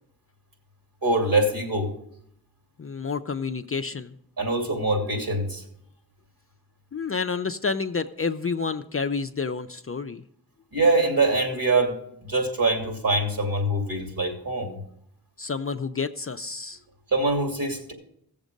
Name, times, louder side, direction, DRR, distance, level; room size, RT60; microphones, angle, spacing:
voice 1, 1.0-1.9 4.4-5.6 10.7-11.9 12.2-14.8 17.1-17.9, right 2 dB, 60° right, 2 dB, 2.9 m, -24 dB
voice 2, 2.8-4.2 6.9-10.2 15.4-16.8, left 5 dB, 35° left, 8 dB, 0.5 m, -29 dB
16.0 x 7.2 x 5.2 m, 0.70 s
wide cardioid pair, 70°, 40 cm